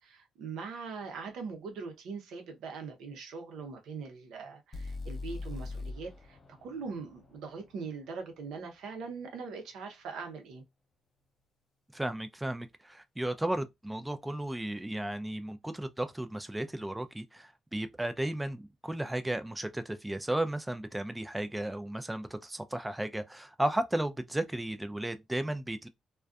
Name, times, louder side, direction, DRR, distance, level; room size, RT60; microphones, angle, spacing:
voice 1, 0.0-10.6, right 5 dB, 80° right, 0.6 m, -41 dB
sound 1, 4.7-8.7, left 3 dB, 35° left, 0.6 m, -42 dB
voice 2, 11.9-25.9, right 1 dB, 10° right, 0.3 m, -34 dB
2.5 x 2.2 x 2.3 m
cardioid pair, 90°, 0 cm